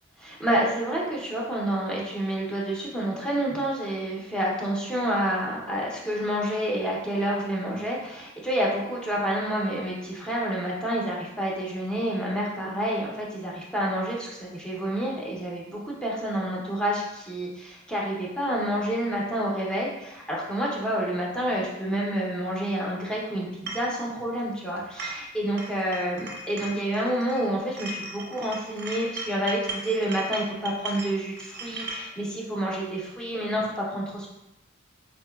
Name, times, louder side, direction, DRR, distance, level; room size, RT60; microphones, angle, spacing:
voice 1, 0.2-34.3, right 1 dB, 5° left, -4 dB, 0.6 m, -28 dB
sound 1, 23.7-23.9 24.8-25.3 25.6-27.4 27.8-32.1, right 2 dB, 50° right, 0.5 m, -37 dB
3.8 x 2.7 x 2.2 m, 0.91 s
head